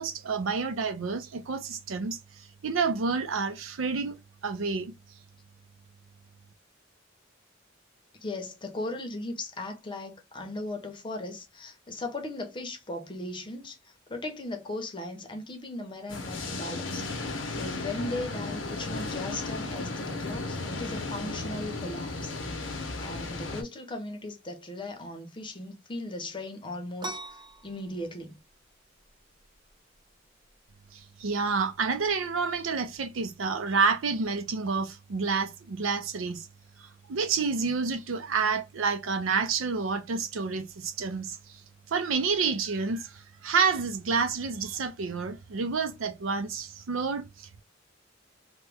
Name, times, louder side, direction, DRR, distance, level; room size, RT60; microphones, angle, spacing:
voice 1, 0.0-2.2 2.6-4.2 4.4-4.9 30.9-36.5 37.1-41.4 41.9-47.6, right 5 dB, 85° right, 0.5 m, -29 dB
voice 2, 8.2-22.4 23.0-28.4, left 2 dB, 25° left, 0.7 m, -38 dB
sound 1, 16.1-23.6, left 3 dB, 65° left, 0.7 m, -35 dB
sound 2, 27.0-34.4, right 2 dB, 20° right, 0.4 m, -46 dB
3.0 x 2.2 x 3.3 m
head